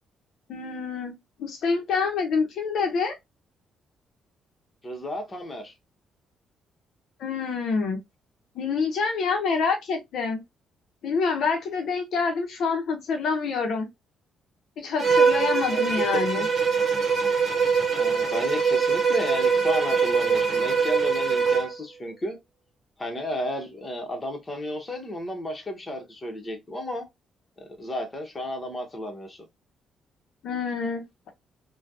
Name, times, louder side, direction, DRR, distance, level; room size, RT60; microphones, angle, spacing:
voice 1, 0.5-3.2 7.2-8.0 8.5-10.4 11.0-13.9 14.8-16.5 30.4-31.3, left 5 dB, 70° left, 0.7 m, -27 dB
voice 2, 4.8-5.7 15.7-16.5 18.0-22.4 23.0-27.1 27.6-29.5, left 1 dB, 25° left, 1.1 m, -33 dB
Bowed string instrument, 15.0-21.7, right 5 dB, 45° right, 1.0 m, -23 dB
3.2 x 2.2 x 2.6 m
cardioid pair, 90°, 0 cm